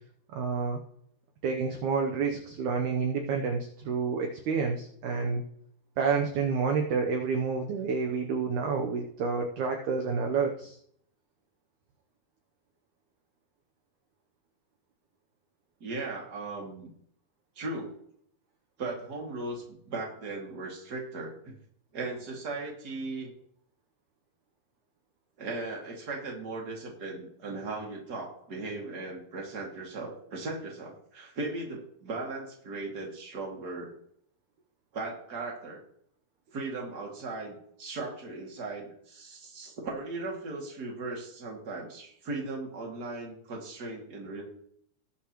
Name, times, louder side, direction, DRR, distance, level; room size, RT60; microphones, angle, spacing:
voice 1, 0.3-0.8 1.4-5.4 6.0-10.8, right 5 dB, 70° right, 3 dB, 1.9 m, -29 dB
voice 2, 15.8-16.9 17.6-17.9 18.8-21.5 21.9-23.3 25.4-33.9 34.9-35.8 36.5-44.4, right 3 dB, 30° right, -1 dB, 2.3 m, -37 dB
19.0 x 7.1 x 3.1 m, 0.66 s
omnidirectional pair, 4.5 m